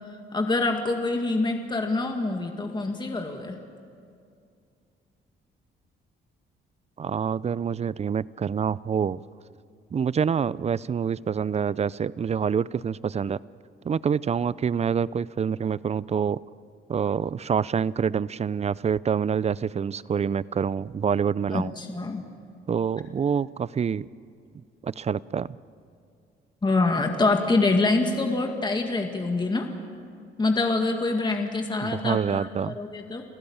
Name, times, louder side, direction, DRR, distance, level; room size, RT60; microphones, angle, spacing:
voice 1, 0.3-3.6 21.5-22.2 26.6-29.7 30.4-33.2, left 3 dB, 20° left, 3 dB, 2.1 m, -25 dB
voice 2, 7.0-9.2 9.9-13.4 13.8-16.4 16.9-21.7 22.7-24.1 24.8-25.5 31.8-32.8, right 7 dB, 35° right, 20 dB, 0.5 m, -26 dB
28.5 x 15.5 x 8.8 m, 2.4 s
cardioid pair, 90°, 20 cm